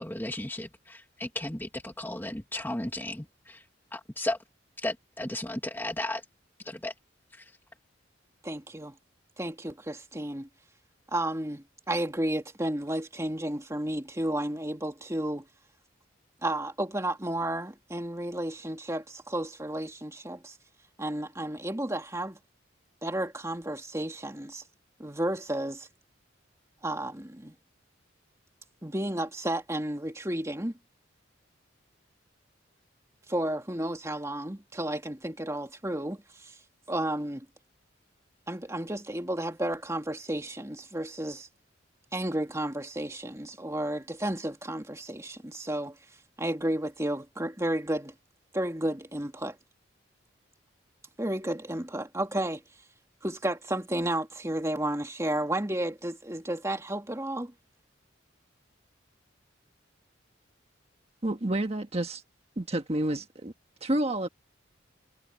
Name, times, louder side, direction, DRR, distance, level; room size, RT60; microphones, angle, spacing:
voice 1, 0.0-3.6 3.9-4.4 4.8-6.2 6.6-6.9 7.3-7.5, left 1 dB, 10° left, 1.5 m, -35 dB
voice 2, 8.4-9.0 9.4-10.5 11.1-15.5 16.4-20.6 21.0-22.4 23.0-24.6 25.0-25.9 26.8-27.5 28.8-30.7 33.3-36.6 36.9-37.5 38.5-41.5 42.1-46.0 46.4-48.1 48.5-49.6 51.2-52.6 53.2-57.5, right 1 dB, 15° right, 2.4 m, -32 dB
voice 3, 61.2-62.2 62.6-63.5 63.8-64.3, right 1 dB, 30° right, 1.4 m, -29 dB
head